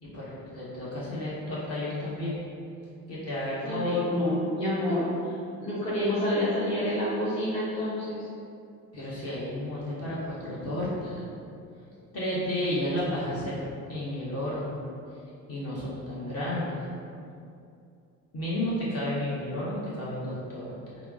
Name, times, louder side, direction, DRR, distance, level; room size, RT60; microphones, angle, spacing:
voice 1, 0.0-2.4 3.1-4.1 8.9-11.2 12.1-13.6 13.9-14.8 15.5-16.8 18.3-21.0, left 1 dB, 35° left, -8 dB, 1.2 m, -32 dB
voice 2, 3.6-5.3 5.6-8.2, left 1 dB, 10° left, -9 dB, 0.8 m, -28 dB
3.5 x 2.0 x 3.5 m, 2.5 s
figure-of-eight pair, 50°, 43 cm